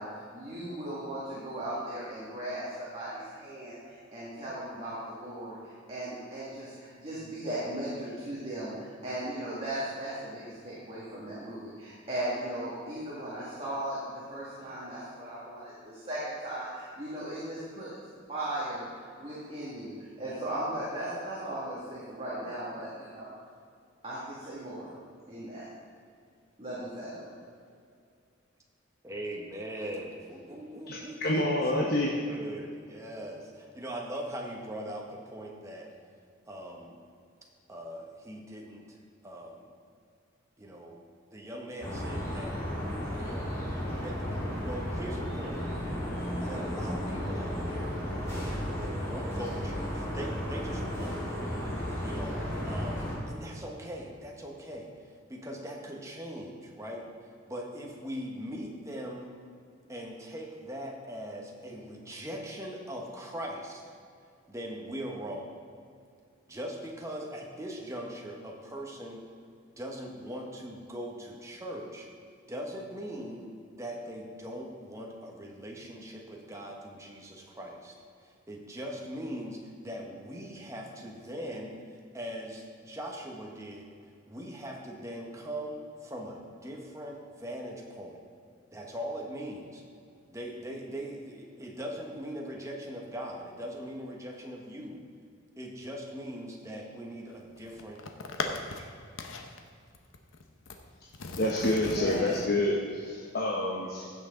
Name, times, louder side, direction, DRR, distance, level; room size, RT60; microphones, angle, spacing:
voice 1, 0.0-17.9 18.3-18.8 19.2-23.3 24.0-24.9 25.3-25.7 26.6-27.3 102.0-102.5, right 1 dB, 30° right, -9 dB, 2.1 m, -37 dB
voice 2, 29.0-31.5 32.3-35.9 36.5-36.9 37.7-39.0 39.2-39.6 40.6-41.0 41.3-42.5 43.2-43.5 44.0-44.3 44.6-45.6 46.4-47.9 48.3-51.2 52.0-54.9 55.3-57.0 57.5-59.3 59.9-63.8 64.5-65.5 66.5-69.2 69.8-72.1 72.5-73.5 73.8-77.9 78.2-81.8 82.1-83.9 84.3-88.2 88.7-89.8 90.3-95.0 95.6-98.9, equal, 15° right, 0 dB, 1.3 m, -40 dB
voice 3, 30.9-32.2 101.4-104.1, left 1 dB, 50° left, -2 dB, 0.9 m, -28 dB
sound 1, 41.8-53.2, equal, 15° left, 2.4 m, -34 dB
sound 2, 97.3-98.8 99.2-99.6 99.9-100.8 101.1-102.5, left 3 dB, 85° left, 0.8 m, -38 dB
15.5 x 6.0 x 3.9 m, 2.3 s
head